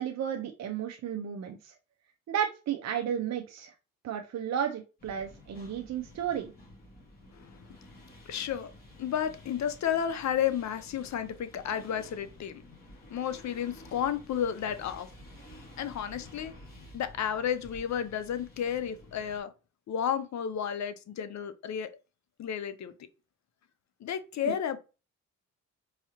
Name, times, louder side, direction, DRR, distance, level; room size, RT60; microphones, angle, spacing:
voice 1, 0.0-1.7 2.3-3.7 4.0-6.5 24.4-24.6, right 8 dB, 55° right, 0.6 m, -33 dB
sound 1, 5.0-19.4, left 1 dB, 30° left, 2.5 m, -52 dB
voice 2, 8.3-8.7 9.0-12.6 13.1-15.1 15.8-16.5 16.9-19.5 19.9-21.9 22.4-22.9 24.0-24.8, left 9 dB, 60° left, 0.6 m, -32 dB
4.7 x 2.8 x 2.9 m
cardioid pair, 90°, 32 cm